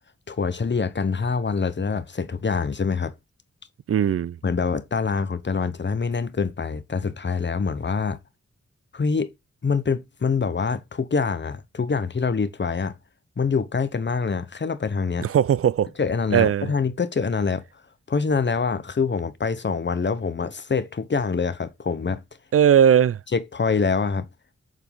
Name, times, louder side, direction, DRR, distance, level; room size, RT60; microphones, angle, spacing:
voice 1, 0.3-3.1 4.4-8.2 8.9-9.3 9.6-13.0 13.4-15.3 16.0-17.6 18.1-22.2 23.3-24.3, left 5 dB, 40° left, 0.8 m, -25 dB
voice 2, 3.9-4.4 15.2-15.9 16.3-16.7 22.5-23.2, right 9 dB, 50° right, 0.4 m, -18 dB
7.3 x 3.9 x 3.5 m
cardioid pair, 55°, 29 cm